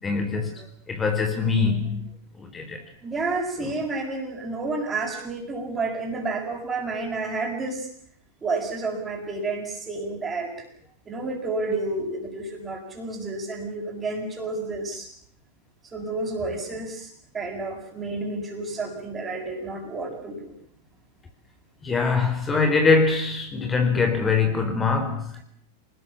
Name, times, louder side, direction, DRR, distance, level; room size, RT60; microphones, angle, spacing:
voice 1, 0.0-2.0 2.4-2.8 21.8-25.4, left 4 dB, 15° left, 5 dB, 4.4 m, -23 dB
voice 2, 3.0-7.9 8.4-10.5 11.1-15.1 15.9-17.1 17.3-20.5, right 3 dB, 20° right, -5 dB, 7.5 m, -30 dB
28.5 x 20.5 x 7.4 m, 0.63 s
figure-of-eight pair, 90°, 0 cm